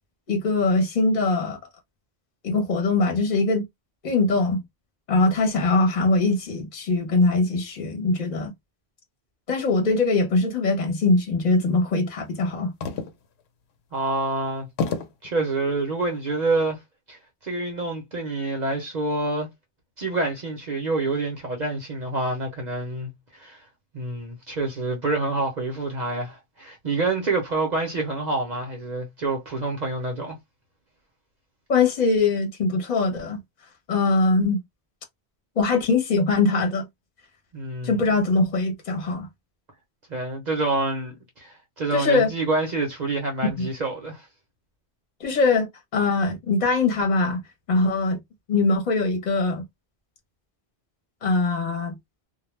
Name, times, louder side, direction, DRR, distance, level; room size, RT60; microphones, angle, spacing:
voice 1, 0.3-1.6 2.4-3.6 4.0-4.6 5.1-8.5 9.5-12.7 31.7-33.4 33.9-34.6 35.6-36.9 37.8-39.3 41.9-42.3 43.4-43.7 45.2-47.4 47.7-48.2 48.5-49.6 51.2-51.9, left 3 dB, 45° left, 0.8 m, -22 dB
sound 1, 12.8-13.4 13.9-14.0 14.8-15.3 16.1-16.5, left 5 dB, 85° left, 0.9 m, -29 dB
voice 2, 13.9-14.7 15.2-16.8 17.1-19.5 20.0-23.6 23.9-30.4 37.5-38.0 40.1-44.3, right 3 dB, 50° right, 0.8 m, -27 dB
2.2 x 2.1 x 3.1 m
omnidirectional pair, 1.1 m